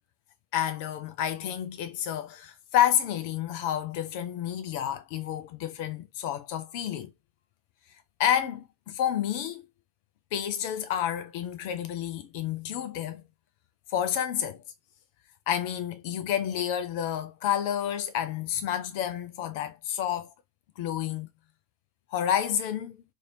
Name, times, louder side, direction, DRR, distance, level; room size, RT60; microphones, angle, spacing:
voice 1, 0.5-7.1 8.2-9.6 10.3-13.2 13.9-14.6 15.5-20.3 20.8-21.3 22.1-23.0, left 10 dB, 45° left, 0.5 m, -29 dB
3.2 x 2.6 x 2.6 m
figure-of-eight pair, 90°, 0 cm